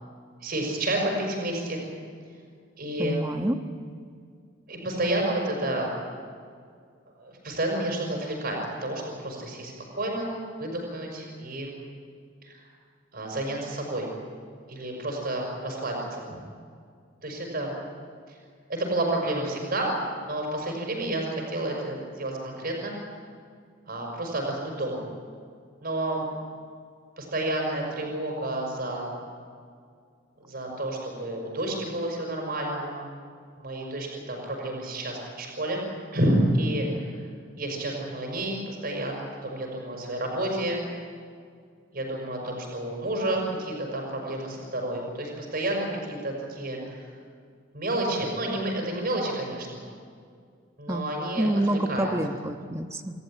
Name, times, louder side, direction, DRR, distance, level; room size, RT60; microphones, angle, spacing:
voice 1, 0.4-1.8 2.8-3.2 4.7-5.9 7.2-10.3 10.6-11.7 12.4-12.6 13.1-14.1 14.7-16.2 17.2-17.7 18.3-18.4 18.7-19.9 20.2-22.9 23.9-25.0 25.8-26.3 27.2-29.1 30.4-33.0 33.6-35.8 36.1-37.1 37.6-40.8 41.9-47.1 47.7-49.8 50.8-52.1, right 1 dB, 50° right, 0 dB, 5.9 m, -30 dB
voice 2, 3.0-3.6 50.9-51.0 51.4-53.2, right 1 dB, 15° right, 6 dB, 1.2 m, -27 dB
27.5 x 14.0 x 9.2 m, 2.2 s
head